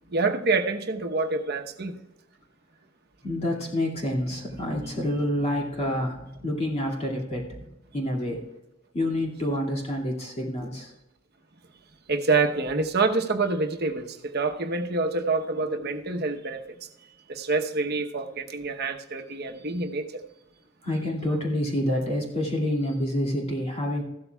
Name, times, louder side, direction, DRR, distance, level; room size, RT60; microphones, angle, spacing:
voice 1, 0.1-2.0 12.1-16.9 17.3-20.2, right 3 dB, 55° right, 1.0 m, -27 dB
voice 2, 3.2-7.7 7.9-8.4 8.9-10.9 15.7-16.0 20.8-24.0, left 1 dB, 35° left, 2.3 m, -28 dB
14.5 x 12.5 x 2.3 m
head